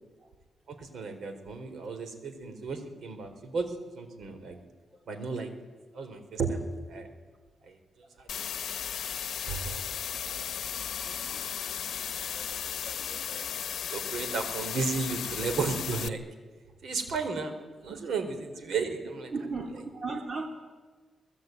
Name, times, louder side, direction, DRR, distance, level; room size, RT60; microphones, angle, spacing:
voice 1, 0.7-4.6 5.1-5.5 5.9-7.1 7.6-8.3 8.9-9.1 9.5-9.9 11.0-11.4 12.3-12.6 12.8-13.4 13.9-16.2 16.8-17.5 17.8-19.3, right 4 dB, 70° right, 8 dB, 4.2 m, -34 dB
sound 1, 8.3-16.1, left 9 dB, 75° left, 0.9 m, -35 dB
voice 2, 19.3-20.5, right 3 dB, 40° right, 4 dB, 2.8 m, -35 dB
25.0 x 20.0 x 9.4 m, 1.4 s
cardioid pair, 115°, 0 cm